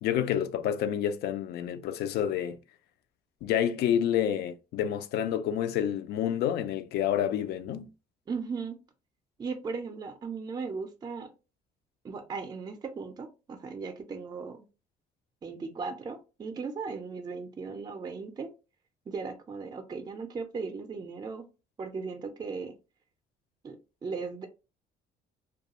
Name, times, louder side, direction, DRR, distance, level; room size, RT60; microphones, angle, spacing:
voice 1, 0.0-2.6 3.4-7.9, left 10 dB, 70° left, 0.4 m, -28 dB
voice 2, 8.3-8.8 9.4-11.3 12.0-14.6 15.4-18.5 19.1-21.4 21.8-22.7 23.6-23.8 24.0-24.5, right 4 dB, 25° right, 0.4 m, -37 dB
2.3 x 2.3 x 2.8 m
cardioid pair, 110°, 17 cm